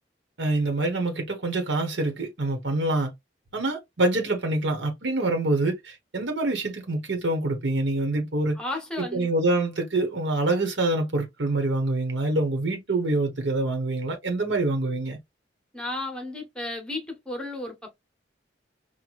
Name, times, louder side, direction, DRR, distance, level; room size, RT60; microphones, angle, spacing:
voice 1, 0.4-3.1 3.5-8.6 9.0-15.2, right 2 dB, 75° right, 1.3 m, -26 dB
voice 2, 8.6-9.3 15.7-18.0, left 2 dB, 5° left, 1.1 m, -33 dB
4.6 x 2.4 x 2.5 m
head